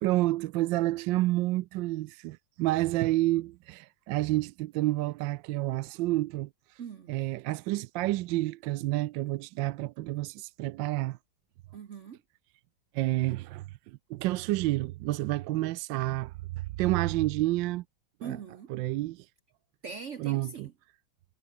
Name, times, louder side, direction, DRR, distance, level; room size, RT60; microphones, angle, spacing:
voice 1, 0.0-6.8 7.1-11.2 12.9-16.4 16.8-17.8 18.2-18.4 18.7-19.3 20.2-20.7, right 17 dB, 75° right, 1.2 m, -29 dB
voice 2, 6.8-7.1 11.7-12.2 18.2-18.7 19.8-20.7, right 6 dB, 50° right, 0.9 m, -41 dB
omnidirectional pair, 2.2 m